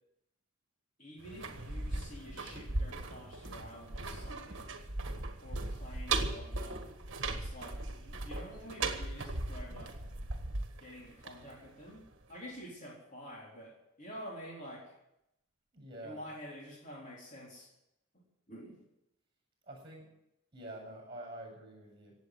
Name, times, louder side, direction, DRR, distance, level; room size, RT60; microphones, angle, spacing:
voice 1, 1.0-4.8 5.4-6.8 7.3-10.0 10.8-14.9 16.0-17.7 18.5-18.8, equal, 35° left, -4 dB, 3.9 m, -49 dB
sound 1, 1.2-12.0 12.3-12.4, right 3 dB, 55° right, 1.7 m, -38 dB
voice 2, 15.7-16.2 19.7-20.1 20.5-22.1, right 1 dB, 25° right, 1 dB, 7.6 m, -47 dB
17.0 x 8.2 x 9.5 m, 0.85 s
head